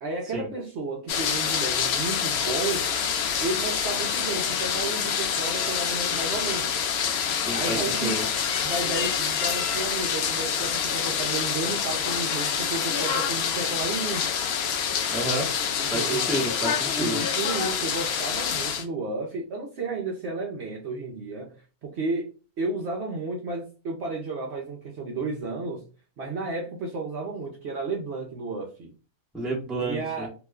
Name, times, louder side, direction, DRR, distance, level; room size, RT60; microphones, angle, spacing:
voice 1, 0.0-2.9 3.4-6.7 7.5-8.2 8.6-14.3 15.8-16.5 17.0-21.5 21.8-22.3 22.6-25.8 26.2-28.9 29.8-30.3, right 3 dB, 60° right, 0.8 m, -32 dB
sound 1, 1.1-18.8, left 7 dB, 70° left, 0.6 m, -27 dB
voice 2, 7.4-8.2 15.1-15.5 15.9-17.2 29.3-30.3, right 2 dB, ahead, 0.6 m, -30 dB
2.9 x 2.1 x 3.5 m
omnidirectional pair, 1.6 m